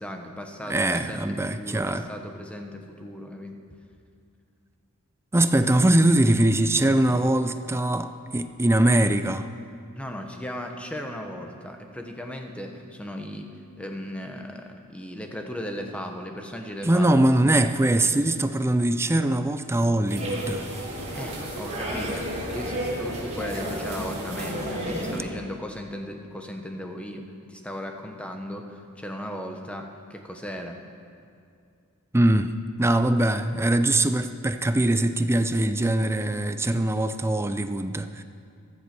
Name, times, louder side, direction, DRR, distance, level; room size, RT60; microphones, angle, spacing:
voice 1, 0.0-3.6 9.9-13.5 13.8-17.3 21.1-22.3 22.5-27.2 27.5-30.8, equal, 5° left, 3 dB, 1.1 m, -36 dB
voice 2, 0.7-2.1 5.3-9.5 16.8-20.7 32.1-32.5 32.8-38.2, right 1 dB, 10° right, 10 dB, 0.5 m, -22 dB
sound 1, 20.1-25.2, equal, 30° right, 4.5 m, -31 dB
15.0 x 12.5 x 6.0 m, 2.4 s
head